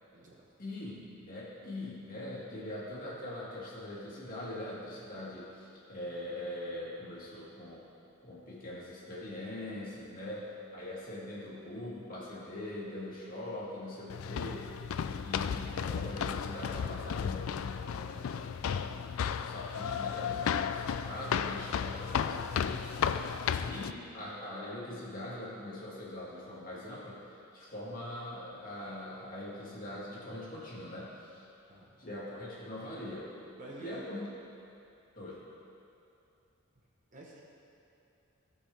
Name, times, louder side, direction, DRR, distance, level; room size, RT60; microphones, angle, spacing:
voice 1, 0.6-7.8 8.2-27.2 27.5-31.5 32.0-33.3 33.8-34.3 35.1-35.5, left 1 dB, 40° left, -6 dB, 2.0 m, -42 dB
sound 1, 14.1-23.9, left 7 dB, 80° left, 0.3 m, -34 dB
voice 2, 31.7-32.0 33.5-34.0 37.1-37.4, right 1 dB, 40° right, -3 dB, 1.1 m, -48 dB
15.0 x 5.5 x 3.4 m, 2.7 s
head